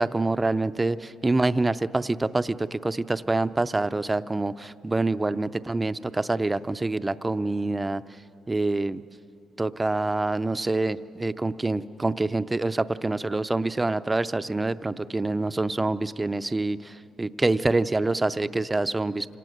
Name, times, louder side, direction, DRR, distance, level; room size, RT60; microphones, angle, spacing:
voice 1, 0.0-8.0 8.5-9.0 9.6-19.3, right 2 dB, 20° right, 13 dB, 0.5 m, -26 dB
26.0 x 18.5 x 6.5 m, 2.9 s
cardioid pair, 90°, 0 cm